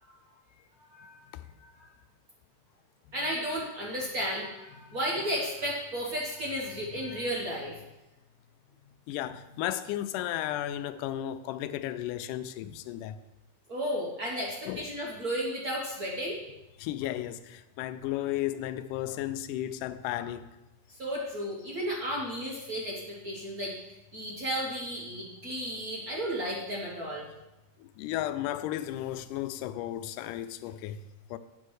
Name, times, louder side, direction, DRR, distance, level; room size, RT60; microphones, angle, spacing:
voice 1, 0.9-1.3 1.6-1.9 3.1-7.8 13.7-16.4 21.0-23.7 24.1-27.3, equal, 85° right, 0.8 m, -33 dB
voice 2, 8.9-13.2 14.7-14.9 16.8-20.5 27.8-31.0 31.3-31.4, left 13 dB, 80° left, 2.1 m, -34 dB
9.3 x 5.2 x 6.3 m
omnidirectional pair, 3.7 m